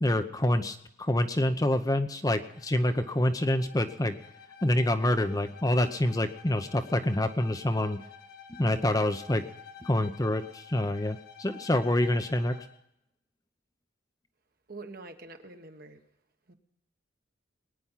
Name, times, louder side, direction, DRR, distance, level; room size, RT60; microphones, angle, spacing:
voice 1, 0.0-4.2 4.6-8.0 8.5-9.4 9.8-12.5, left 1 dB, 20° left, 8 dB, 0.8 m, -27 dB
Bowed string instrument, 2.3-12.8, left 7 dB, 50° left, 1.8 m, -51 dB
voice 2, 14.7-16.0 16.5-16.6, right 3 dB, 50° right, 6 dB, 1.5 m, -45 dB
21.5 x 9.7 x 5.7 m, 0.77 s
head